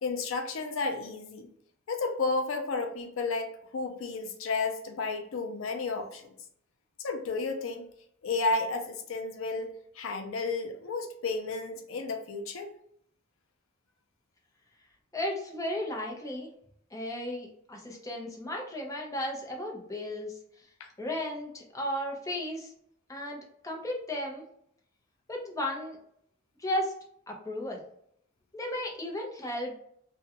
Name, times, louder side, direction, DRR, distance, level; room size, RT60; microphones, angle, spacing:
voice 1, 0.0-1.5 1.9-6.3 7.0-7.9 8.2-12.7 20.8-20.9, left 3 dB, 85° left, 4 dB, 0.4 m, -32 dB
voice 2, 15.1-16.5 16.9-20.3 21.0-22.7 23.1-24.4 25.3-26.0 26.6-26.9 27.3-27.8 28.5-29.8, left 1 dB, 15° left, 0 dB, 0.6 m, -34 dB
2.4 x 2.2 x 2.8 m, 0.67 s
head